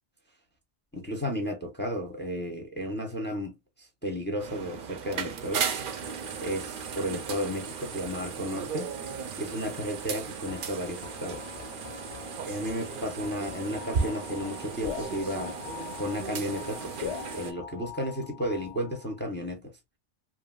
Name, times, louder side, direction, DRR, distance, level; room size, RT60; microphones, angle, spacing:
voice 1, 0.9-5.6 6.4-8.9 9.4-11.5 12.4-15.6 16.0-19.7, equal, 15° left, 0.5 m, -33 dB
sound 1, 4.4-17.5, right 6 dB, 55° right, 0.6 m, -36 dB
sound 2, 10.5-19.2, left 10 dB, 80° left, 0.9 m, -42 dB
2.9 x 2.7 x 2.2 m
omnidirectional pair, 1.2 m